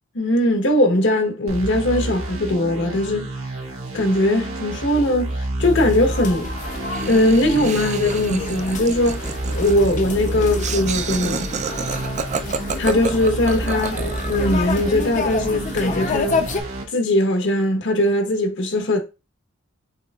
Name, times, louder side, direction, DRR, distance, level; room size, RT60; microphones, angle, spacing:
voice 1, 0.1-3.3 3.9-6.5 7.0-9.2 9.5-11.4 12.8-14.0 14.3-16.5 16.9-19.0, left 1 dB, 60° left, 1.0 m, -20 dB
sound 1, 1.5-16.8, right 2 dB, 80° right, 1.6 m, -30 dB
sound 2, 5.6-16.6, left 3 dB, 35° left, 0.6 m, -30 dB
Laughter, 6.9-14.5, right 5 dB, 35° right, 0.4 m, -30 dB
6.9 x 3.0 x 2.3 m
head